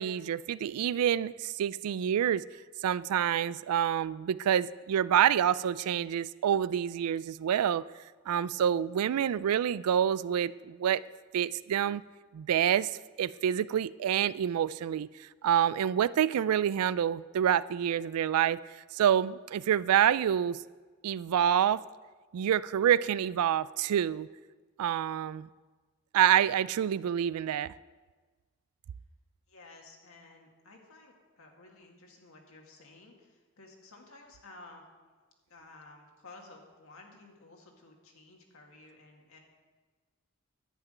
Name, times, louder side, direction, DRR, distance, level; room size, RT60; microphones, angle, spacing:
voice 1, 0.0-2.4 2.8-7.8 8.3-11.0 11.3-12.0 12.3-20.6 21.0-21.8 22.3-24.3 24.8-25.5 26.1-27.7, right 9 dB, 80° right, 18 dB, 0.3 m, -27 dB
voice 2, 29.5-34.8 35.5-39.4, left 2 dB, 70° left, 1 dB, 2.0 m, -54 dB
11.0 x 5.9 x 8.9 m, 1.4 s
head